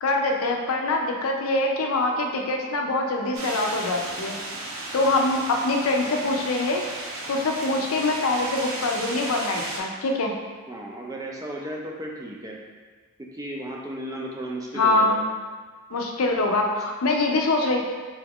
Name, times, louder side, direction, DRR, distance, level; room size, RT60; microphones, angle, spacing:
voice 1, 0.0-4.4 4.9-6.8 7.3-10.3 14.7-15.2 15.9-17.8, left 2 dB, 75° left, 2 dB, 0.5 m, -24 dB
sound 1, 3.3-9.8, right 2 dB, 70° right, 0.6 m, -34 dB
voice 2, 10.7-12.6 13.2-15.3, right 1 dB, 15° right, -1 dB, 0.3 m, -34 dB
4.1 x 2.3 x 3.4 m, 1.4 s
head